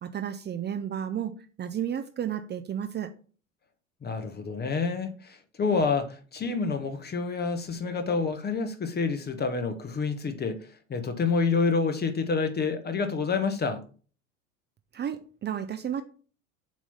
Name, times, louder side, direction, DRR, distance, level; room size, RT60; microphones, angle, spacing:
voice 1, 0.0-1.3 1.6-3.1 14.9-16.0, right 9 dB, 25° right, 0.7 m, -32 dB
voice 2, 4.0-10.6 10.9-13.8, left 4 dB, 25° left, 1.2 m, -28 dB
7.4 x 3.1 x 5.4 m
hypercardioid pair, 75°, 40 cm